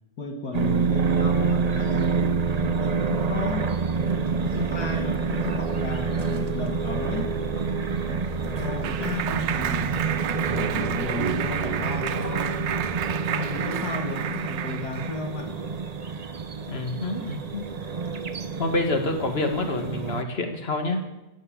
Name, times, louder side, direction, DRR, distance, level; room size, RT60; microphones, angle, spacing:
voice 1, 0.2-3.7 4.3-12.7 13.3-15.6, left 3 dB, 60° left, 3 dB, 2.2 m, -34 dB
sound 1, 0.5-20.2, right 5 dB, 65° right, 0.4 m, -27 dB
sound 2, 7.1-13.2, equal, 15° left, 2.5 m, -40 dB
Clapping, 8.0-15.3, right 9 dB, 80° right, 1.5 m, -31 dB
voice 2, 16.7-17.8 18.6-21.1, left 2 dB, 35° left, 5 dB, 2.0 m, -27 dB
16.5 x 8.7 x 8.7 m, 0.99 s
omnidirectional pair, 1.9 m